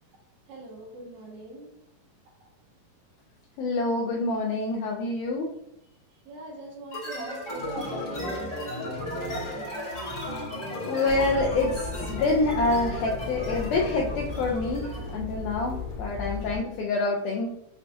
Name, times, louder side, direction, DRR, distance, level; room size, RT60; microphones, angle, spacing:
voice 1, 0.5-1.8 2.4-2.5 6.3-9.0 16.5-16.6, right 2 dB, 90° right, -2 dB, 2.9 m, -42 dB
voice 2, 3.6-5.5 10.8-17.5, left 3 dB, 85° left, -1 dB, 1.8 m, -27 dB
sound 1, 6.9-15.2, left 1 dB, 50° left, 0.9 m, -35 dB
sound 2, 11.0-16.6, left 5 dB, 65° left, 1.9 m, -36 dB
6.6 x 2.3 x 2.5 m, 0.75 s
omnidirectional pair, 4.1 m